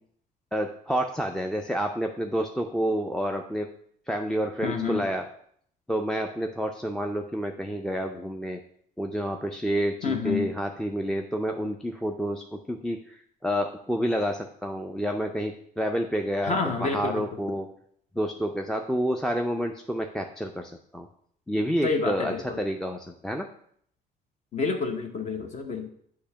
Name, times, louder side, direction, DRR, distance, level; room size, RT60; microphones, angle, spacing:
voice 1, 0.5-3.7 4.1-5.2 5.9-8.6 9.0-17.7 18.1-21.1 21.5-23.5, equal, 5° left, 2 dB, 0.3 m, -29 dB
voice 2, 4.6-5.0 10.0-10.5 16.4-17.3 21.8-22.6 24.5-25.9, left 4 dB, 45° left, 4 dB, 0.8 m, -28 dB
6.6 x 2.8 x 5.6 m, 0.65 s
cardioid pair, 110°, 17 cm